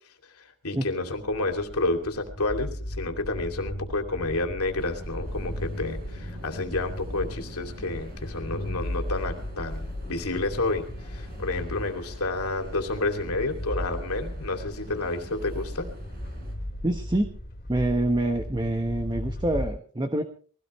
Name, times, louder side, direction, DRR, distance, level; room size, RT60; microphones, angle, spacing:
voice 1, 0.6-15.9, left 2 dB, 75° left, 5 dB, 2.9 m, -30 dB
sound 1, 1.2-19.7, left 1 dB, 45° left, 2.8 m, -36 dB
sound 2, 4.8-16.5, equal, 45° right, 4.9 m, -46 dB
voice 2, 16.8-17.3 17.7-20.2, right 1 dB, 20° right, 6 dB, 1.2 m, -26 dB
22.5 x 17.0 x 3.3 m, 0.43 s
head